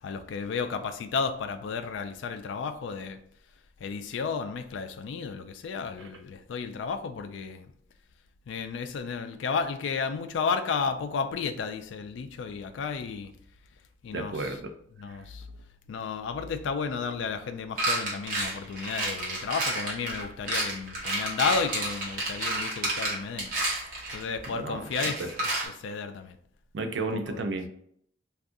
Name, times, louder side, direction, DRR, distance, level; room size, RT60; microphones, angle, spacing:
voice 1, 0.0-3.2 3.8-7.7 8.5-13.3 14.0-14.6 15.0-15.5 15.9-23.5 24.1-26.4 27.1-27.4, left 5 dB, 90° left, 8 dB, 0.3 m, -32 dB
voice 2, 14.1-14.7 15.1-15.2 23.9-24.3 24.6-24.9 25.2-25.3 26.7-27.7, right 3 dB, 75° right, 6 dB, 0.4 m, -33 dB
sound 1, 17.8-24.5 24.9-25.6, right 2 dB, 50° right, 0.9 m, -30 dB
2.6 x 2.3 x 3.6 m, 0.66 s
head